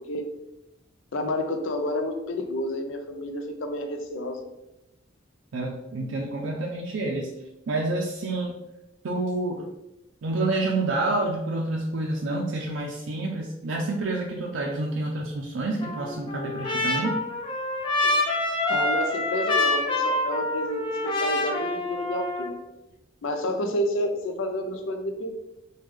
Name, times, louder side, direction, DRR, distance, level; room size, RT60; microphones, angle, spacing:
voice 1, 1.1-4.4 18.0-18.1 18.7-22.6 23.2-25.3, left 1 dB, 80° left, 5 dB, 0.5 m, -30 dB
voice 2, 5.5-7.3 7.7-8.5 9.0-9.7 10.2-17.1, right 2 dB, 75° right, -1 dB, 0.4 m, -28 dB
Trumpet, 15.8-22.5, left 2 dB, 25° left, 0.5 m, -26 dB
3.4 x 2.3 x 3.2 m, 0.92 s
head